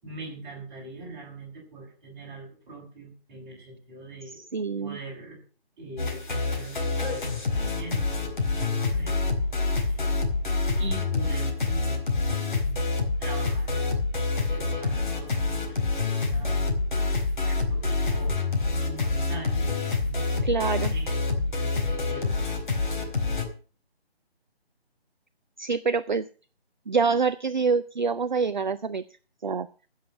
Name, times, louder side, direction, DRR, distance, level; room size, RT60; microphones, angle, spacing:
voice 1, 0.0-4.4 4.8-5.4 5.8-8.2 8.5-9.3 9.6-10.1 10.8-12.0 13.2-14.0 14.5-16.6 17.5-18.4 18.7-19.7 20.3-22.5 23.2-23.4, right 2 dB, 15° right, -3 dB, 5.8 m, -43 dB
voice 2, 4.3-5.0 20.4-20.9 25.6-26.3 26.9-29.0 29.4-29.7, right 5 dB, 45° right, 13 dB, 0.6 m, -26 dB
sound 1, 6.0-23.5, left 3 dB, 50° left, 4.4 m, -27 dB
15.5 x 7.3 x 6.7 m, 0.38 s
figure-of-eight pair, 155°, 31 cm